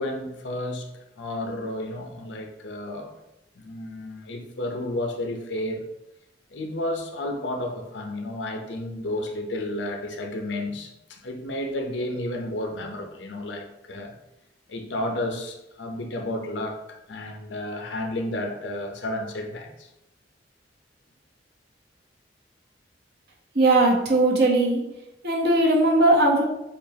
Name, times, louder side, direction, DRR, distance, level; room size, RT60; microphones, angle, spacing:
voice 1, 0.0-3.1 3.5-5.9 6.5-14.1 14.7-16.8 17.1-19.9, left 1 dB, 85° left, 3 dB, 0.7 m, -32 dB
voice 2, 23.5-24.8 25.2-26.4, right 2 dB, 60° right, -1 dB, 1.0 m, -19 dB
6.9 x 2.5 x 2.8 m, 0.90 s
head